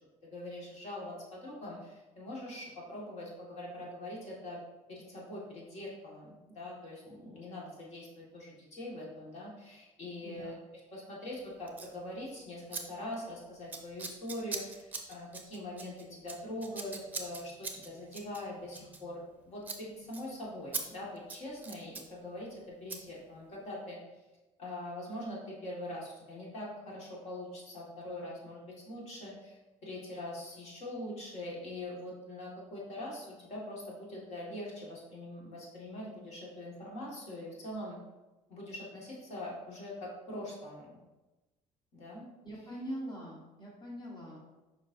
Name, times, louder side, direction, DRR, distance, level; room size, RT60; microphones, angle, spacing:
voice 1, 0.3-4.6 4.9-10.6 10.9-24.0 24.6-38.0 38.5-40.9 41.9-42.3, left 1 dB, 55° left, -4 dB, 1.9 m, -43 dB
Scissors, 11.7-11.9 12.7-12.8 13.1-13.3 13.7-19.4 19.6-19.8 20.1-20.2 20.7-20.8 21.2-22.1 22.9-23.0, right 4 dB, 15° right, 0.7 m, -41 dB
voice 2, 42.4-44.4, equal, 35° left, -4 dB, 1.5 m, -42 dB
7.1 x 5.4 x 2.7 m, 1.1 s
cardioid pair, 150°, 13 cm